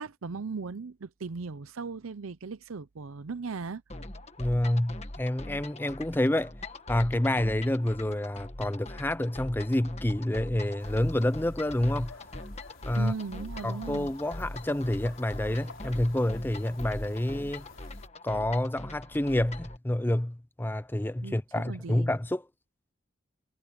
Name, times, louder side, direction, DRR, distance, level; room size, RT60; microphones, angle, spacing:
voice 1, 0.0-3.8 12.9-14.1 21.2-22.1, right 4 dB, 85° right, 0.7 m, -38 dB
sound 1, 3.9-19.8, left 1 dB, 30° left, 1.5 m, -42 dB
voice 2, 4.4-6.5 6.9-12.2 12.8-13.1 13.6-17.7 18.2-22.4, left 1 dB, 10° left, 0.5 m, -28 dB
sound 2, 10.8-18.1, left 2 dB, 70° left, 4.2 m, -51 dB
head